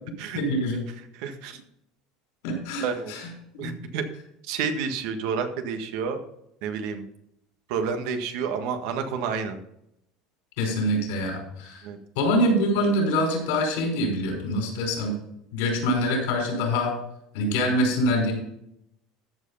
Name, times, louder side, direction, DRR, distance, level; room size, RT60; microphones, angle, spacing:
voice 1, 0.3-0.8 2.4-3.3 3.5-3.7 10.6-11.8 12.2-15.2 15.5-16.9 17.3-18.3, equal, 80° left, 1 dB, 5.3 m, -25 dB
voice 2, 1.1-1.6 2.8-3.2 3.6-4.0 4.5-6.2 6.6-7.1 7.7-9.6 11.8-12.0, right 6 dB, 70° right, 6 dB, 1.6 m, -29 dB
14.0 x 5.5 x 5.6 m, 0.77 s
supercardioid pair, 120°, 0 cm